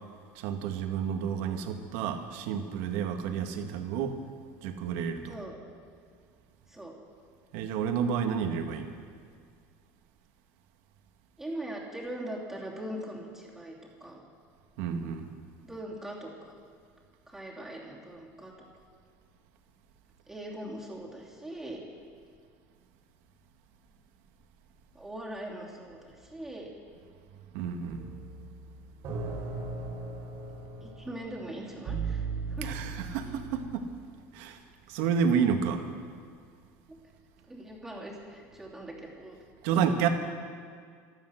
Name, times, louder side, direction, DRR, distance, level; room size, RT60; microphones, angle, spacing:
voice 1, 0.4-4.2 4.6-5.4 7.5-8.9 14.8-15.3 27.5-28.1 32.6-33.9 34.3-34.6 34.9-35.8 39.6-40.1, right 7 dB, 75° right, 5 dB, 1.7 m, -30 dB
voice 2, 11.4-14.2 15.6-16.5 17.3-18.5 20.3-21.8 24.9-26.7 30.8-32.7 36.9-37.0 37.4-39.4 39.7-40.1, right 1 dB, 5° right, -4 dB, 2.9 m, -41 dB
sound 1, 27.9-33.8, right 4 dB, 45° right, 2.9 m, -37 dB
15.5 x 12.5 x 6.4 m, 2.1 s
cardioid pair, 145°, 6 cm